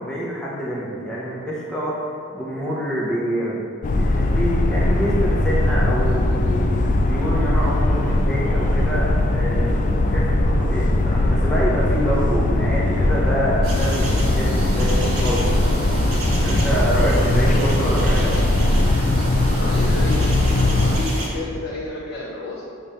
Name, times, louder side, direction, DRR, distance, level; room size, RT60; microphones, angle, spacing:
voice 1, 0.0-3.6 3.9-6.7 7.0-9.8 10.1-15.7 16.4-18.5, right 1 dB, 5° left, -7 dB, 0.7 m, -26 dB
sound 1, 3.8-21.0, left 1 dB, 35° left, 0.3 m, -19 dB
sound 2, 13.6-21.3, right 1 dB, 75° right, 1.1 m, -31 dB
voice 2, 19.5-22.7, left 2 dB, 65° left, -6 dB, 0.8 m, -31 dB
6.9 x 2.5 x 5.5 m, 2.5 s
head